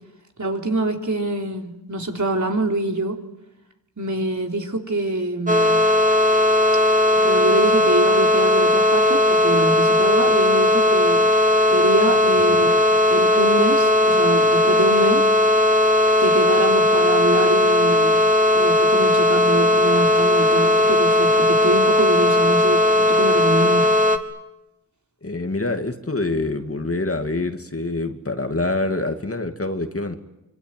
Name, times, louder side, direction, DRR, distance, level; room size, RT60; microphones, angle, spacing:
voice 1, 0.4-3.2 4.0-5.8 7.2-11.3 11.7-12.7 13.1-15.3 16.2-18.2 18.5-23.9, right 2 dB, 50° right, 2 dB, 3.8 m, -24 dB
sound 1, 5.5-24.2, left 1 dB, 20° right, 2.5 m, -17 dB
voice 2, 25.2-30.1, left 2 dB, 35° left, 6 dB, 2.4 m, -25 dB
25.5 x 24.5 x 9.3 m, 0.95 s
cardioid pair, 50°, 39 cm